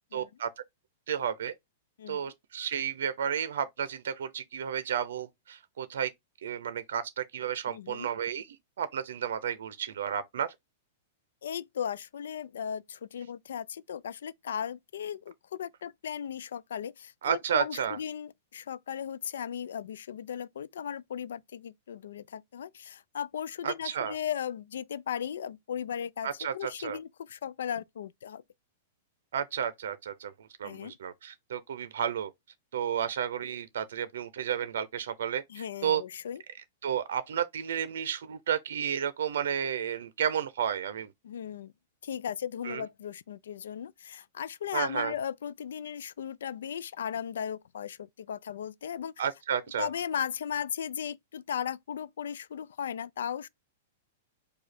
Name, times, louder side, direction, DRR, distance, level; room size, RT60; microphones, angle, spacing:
voice 1, 0.1-0.5 1.1-1.5 2.1-6.1 6.4-10.5 17.2-18.0 23.6-24.1 26.2-27.0 29.3-30.3 30.6-32.3 32.7-36.0 36.8-41.1 42.6-42.8 44.7-45.1 49.2-49.9, right 8 dB, 75° right, 0.5 m, -32 dB
voice 2, 7.7-8.1 11.4-28.4 30.6-30.9 35.5-36.4 41.2-41.7 42.0-49.2 49.8-53.5, left 8 dB, 90° left, 0.4 m, -36 dB
4.9 x 2.3 x 4.2 m
supercardioid pair, 175°, 0 cm